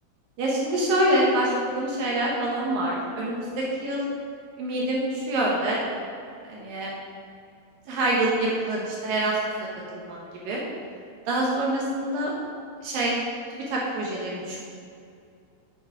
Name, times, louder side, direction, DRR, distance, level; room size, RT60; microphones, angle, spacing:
voice 1, 0.4-4.0 4.6-5.8 6.5-6.9 7.9-9.3 10.0-10.2 10.4-10.6 11.3-12.3 12.8-13.2 13.5-14.6, right 1 dB, 65° right, -3 dB, 2.6 m, -25 dB
8.4 x 7.5 x 4.7 m, 2.4 s
omnidirectional pair, 4.8 m